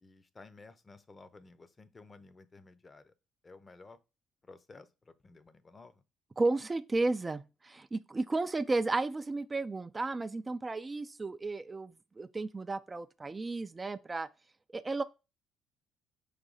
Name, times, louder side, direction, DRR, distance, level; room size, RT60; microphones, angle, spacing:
voice 1, 0.0-3.1 3.4-4.0 4.4-6.0, left 3 dB, 30° left, 0.7 m, -54 dB
voice 2, 6.4-14.3 14.7-15.0, right 3 dB, 25° right, 0.3 m, -33 dB
5.0 x 2.6 x 4.0 m
hypercardioid pair, 50°, 0 cm